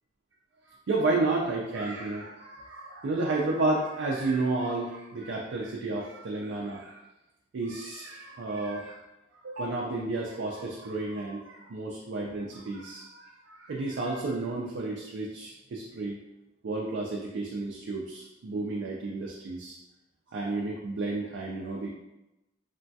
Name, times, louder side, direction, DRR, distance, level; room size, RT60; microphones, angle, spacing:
voice 1, 0.9-7.0 7.5-9.0 9.4-16.2 16.6-19.8 20.3-21.9, right 2 dB, 70° right, -2 dB, 0.4 m, -31 dB
3.0 x 2.2 x 2.7 m, 0.96 s
head